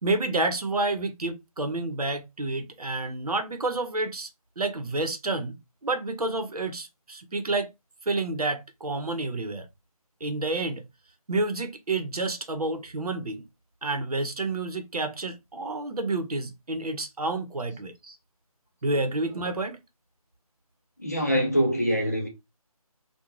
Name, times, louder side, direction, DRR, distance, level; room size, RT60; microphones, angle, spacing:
voice 1, 0.0-4.3 4.6-7.7 8.1-9.7 10.2-10.8 11.3-13.4 13.8-18.2 18.8-19.8, right 2 dB, 85° right, 0.7 m, -29 dB
voice 2, 21.0-22.3, equal, 25° left, 0.5 m, -24 dB
2.4 x 2.1 x 3.0 m
figure-of-eight pair, 175°, 19 cm